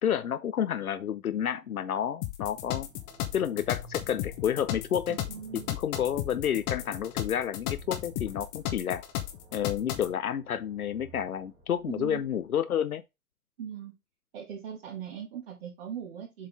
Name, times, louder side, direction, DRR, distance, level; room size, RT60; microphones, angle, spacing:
voice 1, 0.0-2.9 3.3-5.2 5.5-9.0 9.5-13.0, left 9 dB, 75° left, 0.7 m, -30 dB
sound 1, 2.2-10.1, left 13 dB, 20° left, 0.9 m, -35 dB
sound 2, 2.6-12.5, right 3 dB, 10° right, 2.2 m, -53 dB
voice 2, 5.1-5.7 11.9-12.2 13.6-13.9 14.3-16.5, right 8 dB, 40° right, 1.9 m, -40 dB
7.5 x 4.1 x 3.5 m
figure-of-eight pair, 125°, 44 cm